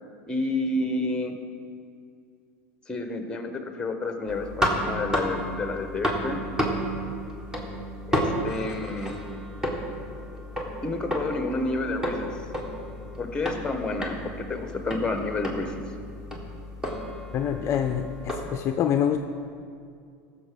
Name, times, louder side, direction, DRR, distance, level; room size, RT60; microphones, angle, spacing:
voice 1, 0.3-1.4 2.9-6.4 8.1-9.2 10.8-12.4 13.2-15.7, left 2 dB, 10° left, 6 dB, 1.2 m, -30 dB
sound 1, 4.3-18.6, equal, 10° right, 1.7 m, -32 dB
voice 2, 17.3-19.2, left 9 dB, 40° left, 6 dB, 0.5 m, -26 dB
14.5 x 6.8 x 5.2 m, 2.3 s
supercardioid pair, 115°, 7 cm